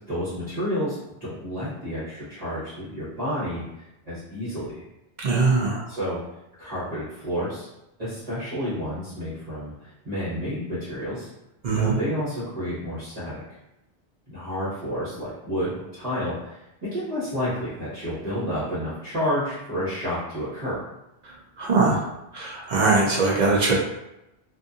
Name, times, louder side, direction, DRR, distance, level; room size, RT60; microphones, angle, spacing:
voice 1, 0.1-3.6 4.1-4.8 5.9-6.2 6.6-7.7 8.0-11.3 11.7-13.4 14.3-20.8, equal, 40° right, -12 dB, 1.0 m, -30 dB
voice 2, 5.2-5.8 11.6-11.9 21.2-22.1 22.3-23.7, right 3 dB, 55° right, -3 dB, 0.5 m, -22 dB
2.6 x 2.5 x 2.4 m, 0.90 s
omnidirectional pair, 1.1 m